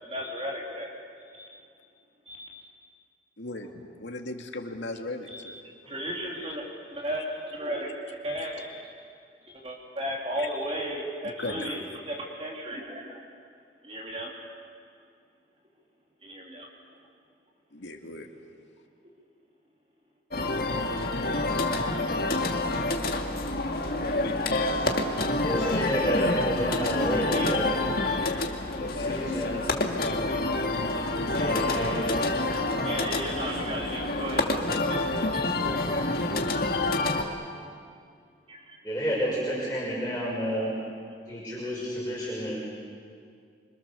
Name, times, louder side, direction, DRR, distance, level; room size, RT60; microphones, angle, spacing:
voice 1, 0.0-0.9 1.2-1.6 2.3-2.7 5.3-5.6 5.9-6.6 6.9-8.9 9.4-13.2 13.8-14.3 16.2-16.7 23.9-24.0 27.3-27.6 28.1-28.4 32.2-35.8 38.5-38.8, equal, 35° right, -2 dB, 3.2 m, -35 dB
voice 2, 3.4-5.6 10.4-10.5 11.4-11.8 17.7-18.3 31.2-31.5, left 2 dB, 85° left, 3 dB, 2.2 m, -37 dB
sound 1, 20.3-37.2, left 2 dB, 55° left, 1.9 m, -27 dB
voice 3, 24.7-25.1 25.4-27.8 28.8-29.9 31.3-31.9 32.2-32.4 38.8-40.7 41.3-42.6, equal, 10° left, -8 dB, 6.1 m, -31 dB
26.5 x 25.5 x 7.0 m, 2.2 s
head